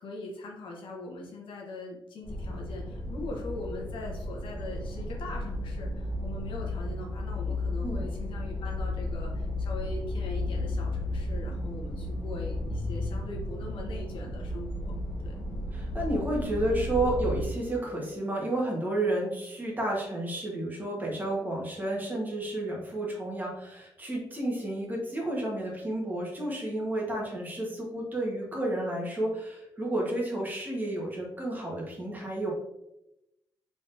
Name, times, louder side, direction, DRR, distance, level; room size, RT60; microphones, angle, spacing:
voice 1, 0.0-14.9 15.2-15.4, left 2 dB, 90° left, -1 dB, 1.0 m, -41 dB
sound 1, 2.2-17.5, left 1 dB, 70° left, 1.0 m, -33 dB
voice 2, 15.7-32.5, right 1 dB, 20° right, -2 dB, 1.2 m, -31 dB
3.7 x 3.7 x 2.6 m, 0.87 s
wide cardioid pair, 125°, 8 cm